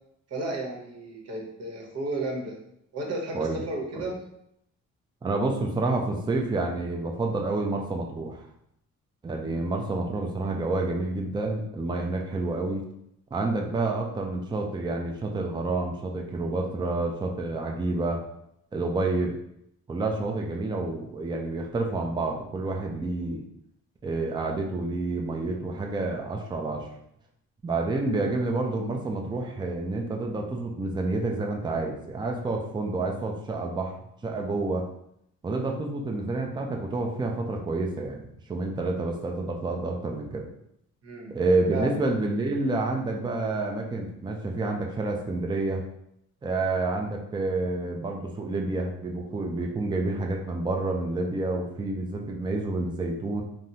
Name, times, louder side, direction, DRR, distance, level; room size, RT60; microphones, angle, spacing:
voice 1, 0.3-2.6 2.9-4.2 41.0-41.3 41.7-42.0, right 2 dB, 55° right, -1 dB, 0.9 m, -33 dB
voice 2, 5.2-8.4 9.2-12.8 13.3-18.2 18.7-19.3 19.9-23.4 24.0-26.9 27.6-34.0 34.2-34.8 35.4-40.5 41.3-45.8 46.4-53.4, right 2 dB, 15° right, 1 dB, 0.4 m, -29 dB
3.4 x 2.0 x 2.7 m, 0.76 s
cardioid pair, 90°, 30 cm